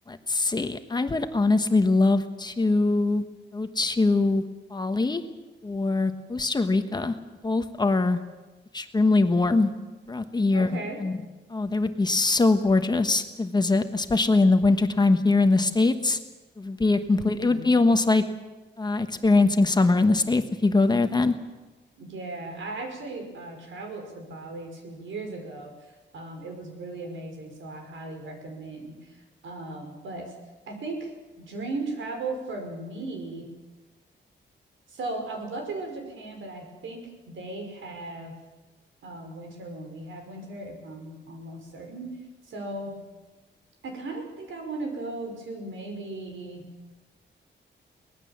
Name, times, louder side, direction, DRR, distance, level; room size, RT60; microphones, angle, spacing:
voice 1, 0.1-3.2 3.5-4.4 4.7-5.2 5.6-7.1 7.4-8.2 8.7-9.7 10.1-10.7 11.0-11.2 11.5-16.2 16.6-18.2 18.8-21.3, left 3 dB, 20° left, 8 dB, 1.2 m, -22 dB
voice 2, 10.5-11.0 17.2-17.7 22.0-30.3 30.7-31.1 31.4-33.5 34.9-38.4 39.0-42.1 42.4-43.0 43.8-46.7, right 2 dB, 90° right, 4 dB, 5.5 m, -37 dB
24.0 x 19.0 x 7.3 m, 1.2 s
wide cardioid pair, 165°, 20 cm